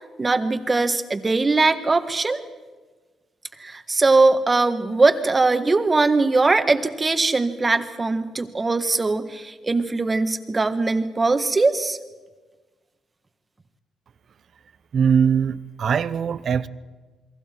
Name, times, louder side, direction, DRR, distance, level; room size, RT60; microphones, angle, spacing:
voice 1, 0.2-2.4 3.6-12.0, right 3 dB, 25° right, 9 dB, 1.6 m, -21 dB
voice 2, 14.9-16.7, right 7 dB, 55° right, 16 dB, 0.8 m, -21 dB
29.0 x 22.5 x 4.6 m, 1.3 s
cardioid pair, 90°, 0 cm